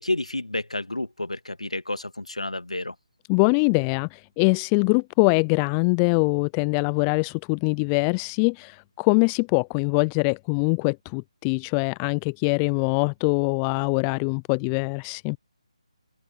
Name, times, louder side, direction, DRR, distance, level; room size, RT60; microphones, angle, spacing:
voice 1, 0.0-2.9, left 2 dB, 80° left, 2.3 m, -30 dB
voice 2, 3.3-15.4, left 37 dB, 15° left, 0.4 m, -23 dB
open air
figure-of-eight pair, 150°, 3 cm